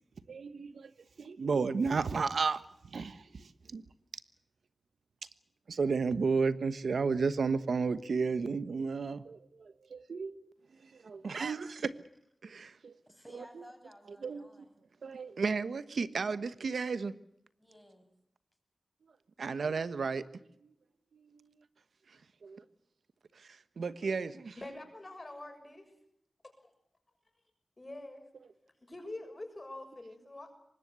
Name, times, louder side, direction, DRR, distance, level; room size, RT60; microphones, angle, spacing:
voice 1, 0.3-0.9 1.2-3.8 5.7-11.9 12.4-13.0 13.3-13.6 14.2-14.5 15.0-17.1 19.4-20.2 20.6-20.7 21.1-21.6 22.1-22.6 23.3-24.6, right 4 dB, 85° right, 1.2 m, -33 dB
voice 2, 13.1-14.8 17.6-18.1, equal, 5° left, 7.3 m, -55 dB
voice 3, 24.6-25.8 26.6-26.7 27.8-28.2 28.8-30.5, left 2 dB, 35° left, 6.6 m, -45 dB
24.5 x 20.0 x 8.2 m
wide cardioid pair, 65°, 0 cm